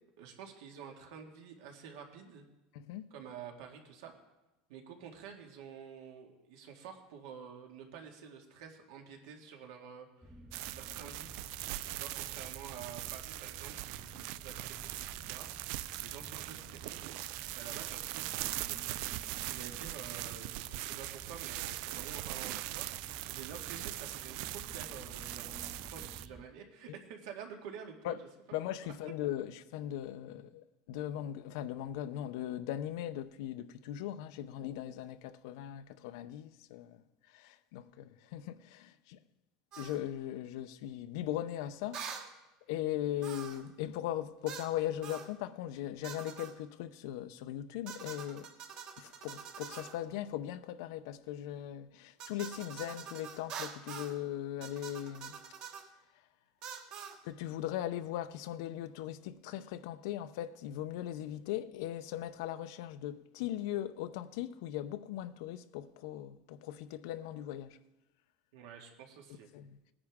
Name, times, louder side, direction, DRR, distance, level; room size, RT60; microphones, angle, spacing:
voice 1, 0.2-2.5 3.1-4.1 4.7-10.4 10.7-11.3 11.9-15.5 16.0-17.0 17.5-25.6 25.9-28.2 28.8-28.9 68.5-69.5, right 7 dB, 85° right, 2.0 m, -49 dB
voice 2, 2.7-3.1 28.0-28.2 28.5-39.2 39.8-42.2 42.7-48.5 49.0-55.4 57.2-67.8 69.5-69.8, left 12 dB, 75° left, 0.6 m, -39 dB
sound 1, 10.2-26.4, right 1 dB, ahead, 0.5 m, -54 dB
sound 2, 10.5-26.3, right 16 dB, 60° right, 0.4 m, -41 dB
sound 3, 39.7-40.0 41.9-42.3 43.2-43.7 44.5-44.7 45.0-45.3 46.0-46.5 47.9-50.0 52.2-54.2 54.6-55.9 56.6-57.2, right 7 dB, 45° right, 1.2 m, -45 dB
19.0 x 9.8 x 3.6 m
cardioid pair, 165°, 2 cm